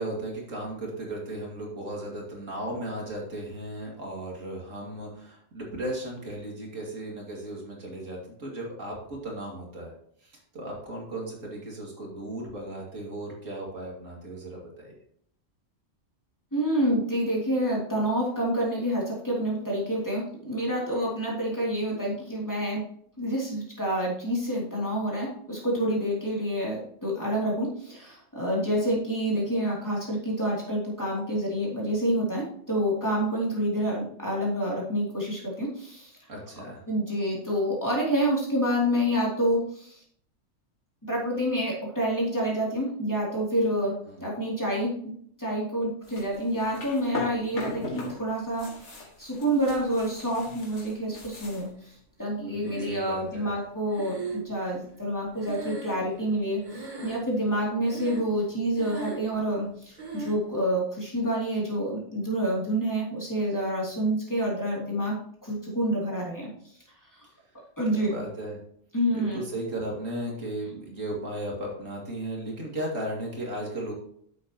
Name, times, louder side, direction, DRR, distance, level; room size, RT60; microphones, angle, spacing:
voice 1, 0.0-9.9 10.2-14.9 36.3-36.8 44.0-44.2 52.5-53.6 67.9-68.6 69.1-73.9, right 1 dB, 85° right, -1 dB, 2.8 m, -36 dB
voice 2, 16.5-22.8 23.2-36.1 36.9-40.0 41.0-43.9 44.2-44.9 45.4-51.7 52.2-65.2 65.4-66.5 67.8-68.1 68.9-69.4, equal, 15° left, -5 dB, 3.0 m, -28 dB
sound 1, 46.0-48.2 48.4-51.7, left 3 dB, 65° left, 2.2 m, -38 dB
Breathing, 52.6-53.3 53.9-56.4 56.6-57.4 57.8-58.4 58.7-59.4 60.0-60.4, right 3 dB, 35° right, 1.7 m, -38 dB
9.9 x 7.7 x 3.0 m, 0.64 s
omnidirectional pair, 1.3 m